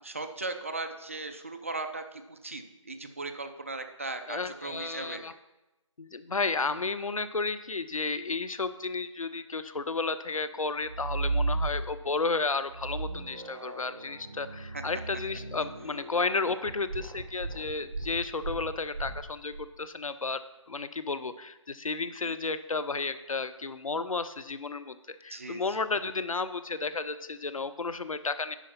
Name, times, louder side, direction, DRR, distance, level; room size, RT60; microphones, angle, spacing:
voice 1, 0.0-5.2 14.7-14.8 22.2-22.3 25.3-25.6, right 3 dB, 25° right, 7 dB, 0.4 m, -38 dB
voice 2, 4.3-5.3 6.0-20.4 20.7-28.6, left 4 dB, 80° left, 12 dB, 0.7 m, -32 dB
sound 1, 10.8-12.2 12.7-19.7, right 3 dB, 50° right, 1.5 m, -35 dB
10.0 x 4.8 x 5.8 m, 0.99 s
figure-of-eight pair, 160°, 17 cm